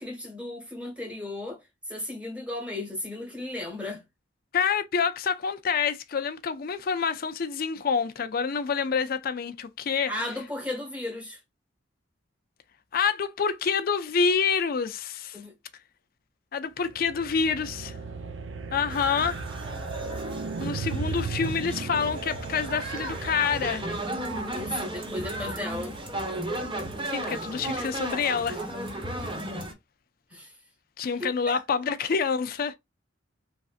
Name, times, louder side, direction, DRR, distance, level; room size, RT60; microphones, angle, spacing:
voice 1, 0.0-4.0 10.1-11.4 15.3-15.5 24.5-26.0 30.3-30.6 31.0-31.6, left 1 dB, 5° right, 1.2 m, -35 dB
voice 2, 4.5-10.1 12.9-15.4 16.5-18.0 18.7-19.4 20.6-23.9 27.0-28.6 31.0-32.8, left 6 dB, 50° left, 0.4 m, -27 dB
sound 1, 16.8-24.2, right 5 dB, 75° right, 0.5 m, -36 dB
sound 2, 18.9-29.7, right 1 dB, 25° right, 0.8 m, -34 dB
3.2 x 2.6 x 2.4 m
head